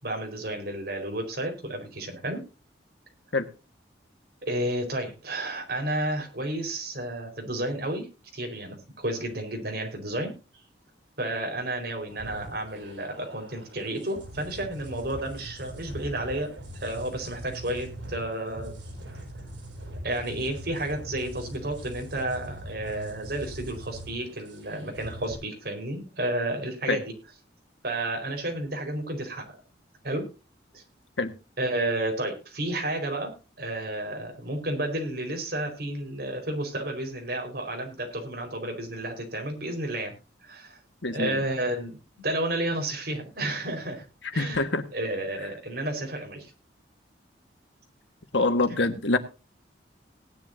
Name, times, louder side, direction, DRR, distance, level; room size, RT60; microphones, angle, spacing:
voice 1, 0.0-2.4 4.4-8.0 8.3-10.3 11.2-18.7 20.0-27.1 27.8-29.4 30.0-30.3 30.7-30.8 31.6-33.3 33.6-40.1 40.4-40.8 41.1-44.1 44.3-44.7 44.9-46.5, right 1 dB, 55° right, 3 dB, 4.6 m, -31 dB
sound 1, 12.1-25.4, right 1 dB, 80° right, 6.1 m, -42 dB
voice 2, 41.0-41.4 44.3-44.8 48.3-49.2, left 3 dB, 80° left, 8 dB, 1.6 m, -25 dB
19.0 x 11.0 x 2.7 m, 0.32 s
head